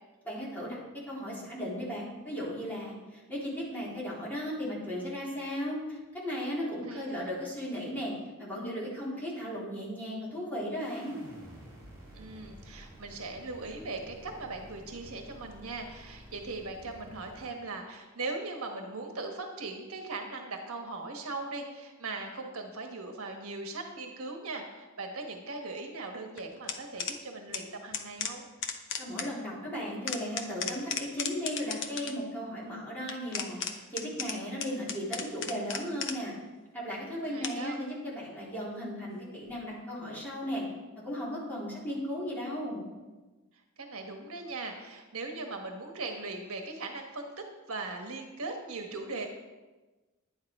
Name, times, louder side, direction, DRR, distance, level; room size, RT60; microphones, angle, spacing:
voice 1, 0.2-0.8 1.1-8.1 8.4-11.2 28.9-36.3 36.7-40.6 40.9-42.8, equal, 10° left, -8 dB, 3.9 m, -36 dB
voice 2, 6.9-7.3 12.1-28.4 37.3-37.8 43.8-47.3 47.7-49.3, right 3 dB, 70° right, 3 dB, 1.4 m, -39 dB
sound 1, 10.8-17.5, right 1 dB, 15° right, 3.2 m, -51 dB
sound 2, 26.4-27.2 27.5-27.6 27.9-29.3 29.8-32.2 33.1-36.4 37.4-37.8 39.5-39.6, left 6 dB, 60° left, 1.0 m, -35 dB
11.0 x 9.6 x 4.8 m, 1.2 s
head